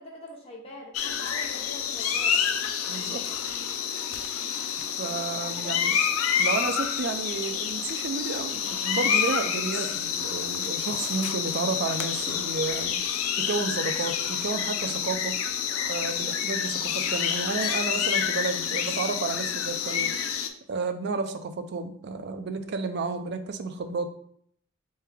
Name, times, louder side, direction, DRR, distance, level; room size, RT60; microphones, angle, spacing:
voice 1, 0.0-2.4 5.3-5.8, left 1 dB, 25° left, -2 dB, 0.7 m, -43 dB
sound 1, 0.9-20.5, left 8 dB, 85° left, 0.4 m, -28 dB
voice 2, 2.9-3.3 5.0-6.0 6.4-13.0 13.4-15.3 15.9-20.1 20.7-24.1, right 4 dB, 50° right, 8 dB, 0.4 m, -31 dB
3.3 x 3.2 x 3.4 m, 0.64 s
head